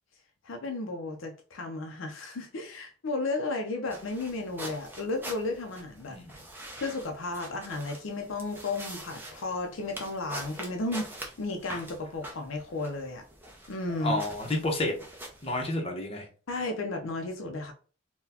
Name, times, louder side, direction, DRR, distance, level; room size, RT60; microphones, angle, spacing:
voice 1, 0.4-6.2 6.8-13.2 13.7-14.2 16.5-17.7, left 2 dB, 65° left, 3 dB, 0.5 m, -34 dB
sound 1, 3.9-15.7, right 1 dB, 10° right, 0.6 m, -44 dB
voice 2, 14.0-14.9 15.4-16.3, left 1 dB, 30° left, 1 dB, 0.8 m, -30 dB
3.9 x 2.2 x 2.8 m, 0.38 s
head